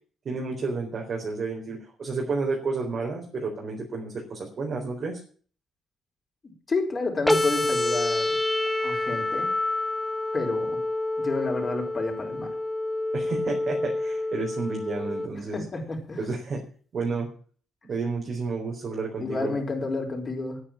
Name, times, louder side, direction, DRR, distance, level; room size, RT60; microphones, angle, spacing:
voice 1, 0.2-5.2 13.1-15.6 16.2-16.6 16.9-17.3 17.9-19.5, right 4 dB, 50° right, 0 dB, 4.0 m, -31 dB
voice 2, 6.7-8.4 8.8-9.5 10.3-10.8 11.2-12.5 15.4-16.2 19.2-20.6, left 3 dB, 35° left, 2 dB, 4.9 m, -30 dB
sound 1, 7.3-15.3, left 2 dB, 5° left, 1.9 m, -27 dB
10.0 x 9.3 x 8.9 m, 0.43 s
cardioid pair, 90°, 0 cm